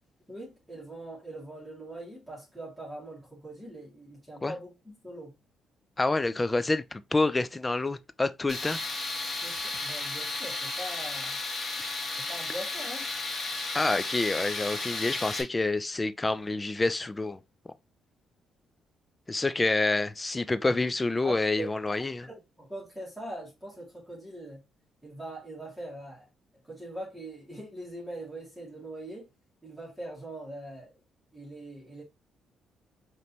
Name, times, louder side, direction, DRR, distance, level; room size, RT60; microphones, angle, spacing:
voice 1, 0.3-5.3 9.3-11.4 12.2-13.1 21.2-21.7 22.2-24.6 25.0-26.2 26.7-29.3 29.6-30.9 31.3-32.0, right 1 dB, ahead, 2.4 m, -42 dB
voice 2, 6.0-8.8 13.7-17.4 19.3-22.3, left 2 dB, 20° left, 0.4 m, -28 dB
Tools, 8.5-15.4, left 3 dB, 45° left, 1.4 m, -34 dB
5.1 x 3.0 x 2.8 m
cardioid pair, 90°, 0 cm